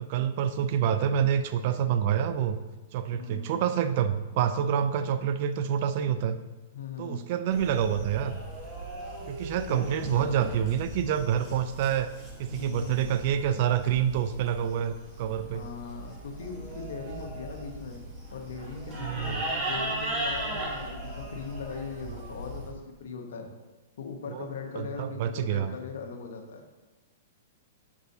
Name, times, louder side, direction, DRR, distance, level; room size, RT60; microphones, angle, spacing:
voice 1, 0.0-2.6 2.9-6.4 7.0-8.4 9.3-12.1 12.4-15.7 19.0-19.4 24.3-24.5 24.8-25.7, right 9 dB, 50° right, 12 dB, 0.4 m, -27 dB
voice 2, 3.1-3.5 6.7-7.2 9.7-10.3 11.7-11.8 12.5-13.4 15.5-18.0 18.3-23.5 24.0-26.6, left 5 dB, 75° left, 3 dB, 1.0 m, -40 dB
sound 1, 7.5-22.7, right 1 dB, 25° right, 2.1 m, -38 dB
6.4 x 6.1 x 2.7 m, 1.2 s
hypercardioid pair, 140°, 0 cm